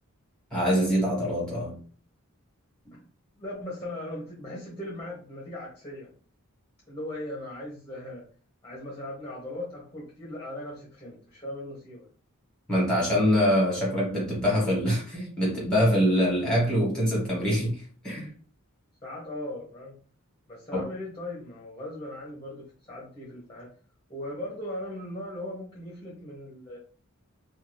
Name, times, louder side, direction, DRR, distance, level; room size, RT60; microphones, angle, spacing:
voice 1, 0.5-1.8 12.7-18.3 20.7-20.9, equal, 5° left, 1.5 m, -24 dB
voice 2, 3.4-6.1 6.9-8.3 8.6-12.1 19.0-20.0 20.5-23.7 24.1-26.8, left 1 dB, 20° left, 0.8 m, -38 dB
2.6 x 2.3 x 3.2 m
head